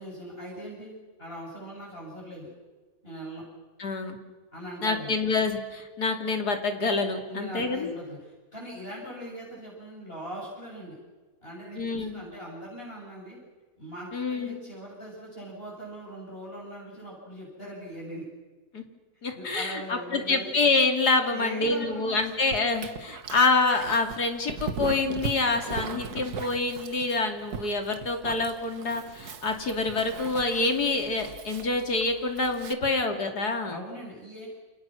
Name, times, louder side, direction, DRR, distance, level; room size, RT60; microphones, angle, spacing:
voice 1, 0.0-2.5 3.0-3.4 4.5-5.2 7.3-11.0 11.4-13.4 13.8-18.2 19.3-20.5 21.3-22.2 33.7-34.5, equal, 35° left, -4 dB, 7.8 m, -40 dB
voice 2, 3.8-4.2 4.8-7.9 11.8-12.2 14.1-14.6 18.7-18.8 19.2-33.8, left 3 dB, 90° left, 4 dB, 3.4 m, -27 dB
Dog, 22.2-32.7, right 6 dB, 80° right, 1.9 m, -39 dB
29.0 x 27.5 x 6.3 m, 1.2 s
omnidirectional pair, 1.6 m